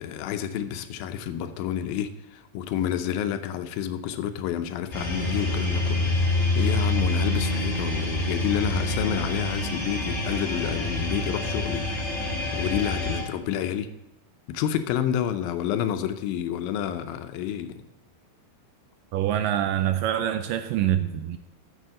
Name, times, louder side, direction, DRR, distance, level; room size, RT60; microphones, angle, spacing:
voice 1, 0.0-6.0 6.6-11.9 12.5-13.9 14.5-17.8, left 10 dB, 80° left, 9 dB, 2.4 m, -29 dB
sound 1, 4.9-13.2, left 2 dB, 20° left, 3.6 m, -26 dB
voice 2, 19.1-21.4, right 11 dB, 80° right, 9 dB, 2.0 m, -25 dB
9.2 x 6.9 x 7.6 m, 0.95 s
omnidirectional pair, 4.3 m